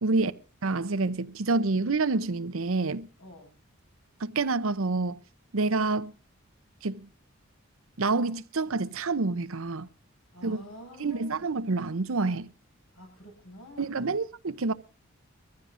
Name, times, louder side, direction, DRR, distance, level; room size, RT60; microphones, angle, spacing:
voice 1, 0.0-0.3 0.6-3.1 4.2-5.2 5.5-6.1 6.8-7.1 8.0-9.9 10.4-10.6 11.0-12.5 13.8-14.7, right 3 dB, 75° right, 0.7 m, -28 dB
voice 2, 3.2-3.5 10.3-11.5 12.9-14.0, equal, 75° left, 7.4 m, -47 dB
23.5 x 15.0 x 2.6 m
head